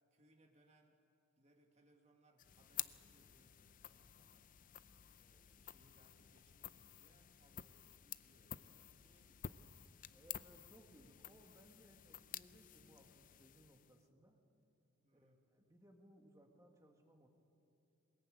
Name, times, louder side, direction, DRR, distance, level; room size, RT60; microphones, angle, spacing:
voice 1, 0.1-1.0 1.4-4.5 5.1-9.6 10.5-11.1 15.0-15.4, right 1 dB, 30° right, 3 dB, 2.1 m, -72 dB
sound 1, 2.4-14.1, left 11 dB, 40° left, 0.5 m, -52 dB
voice 2, 10.1-14.4 15.1-17.3, equal, 15° right, 3 dB, 2.0 m, -65 dB
22.5 x 20.5 x 8.9 m, 2.7 s
head